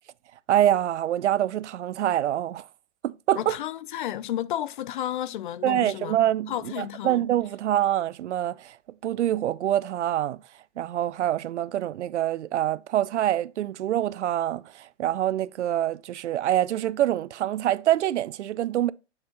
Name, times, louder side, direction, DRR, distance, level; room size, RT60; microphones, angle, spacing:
voice 1, 0.5-2.6 3.0-3.6 5.6-8.8 9.0-10.4 10.8-18.9, right 12 dB, 75° right, 0.5 m, -25 dB
voice 2, 3.4-6.2 6.5-7.3, left 12 dB, 45° left, 0.4 m, -32 dB
7.7 x 4.3 x 3.8 m
hypercardioid pair, 130°, 36 cm